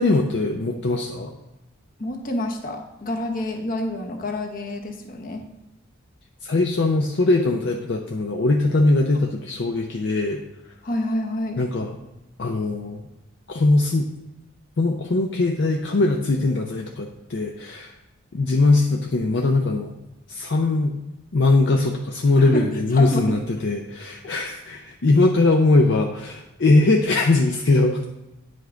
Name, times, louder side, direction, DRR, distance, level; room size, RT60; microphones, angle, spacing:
voice 1, 0.0-1.3 6.4-10.4 11.6-11.9 12.4-13.0 13.5-14.1 14.8-17.9 18.3-20.0 20.3-21.0 21.3-28.0, left 2 dB, 55° left, 2 dB, 0.5 m, -20 dB
voice 2, 2.0-5.4 10.8-11.6 22.4-23.4, left 1 dB, 40° left, 3 dB, 1.0 m, -28 dB
9.4 x 5.3 x 3.8 m, 0.97 s
head